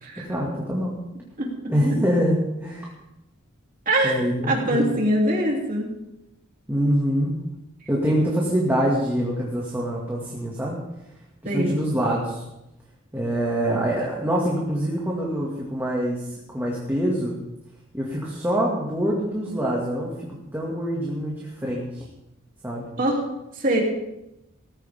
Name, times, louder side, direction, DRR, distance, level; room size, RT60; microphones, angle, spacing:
voice 1, 0.2-1.0 1.7-2.9 4.0-4.8 6.7-7.4 7.9-10.8 11.5-12.4 13.1-17.3 17.9-22.0 22.6-22.9, equal, 10° right, -4 dB, 2.2 m, -25 dB
voice 2, 3.8-4.2 4.5-5.9 11.4-11.8 23.0-23.3 23.5-23.8, right 1 dB, 40° right, -1 dB, 3.2 m, -22 dB
18.0 x 15.0 x 3.7 m, 0.90 s
head